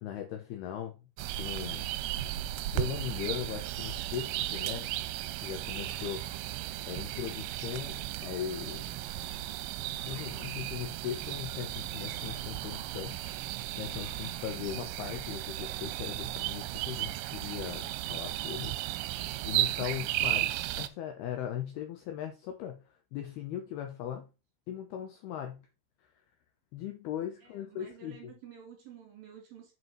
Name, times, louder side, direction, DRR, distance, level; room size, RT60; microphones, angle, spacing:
voice 1, 0.0-1.1 1.4-1.9 2.6-4.9 5.4-6.3 6.9-8.9 10.1-18.8 19.4-24.3 24.7-25.6 26.7-28.3, left 10 dB, 75° left, 2.4 m, -39 dB
sound 1, 1.2-20.9, right 14 dB, 85° right, 3.1 m, -35 dB
voice 2, 27.4-29.7, right 8 dB, 55° right, 3.6 m, -51 dB
7.8 x 5.2 x 5.6 m
omnidirectional pair, 5.7 m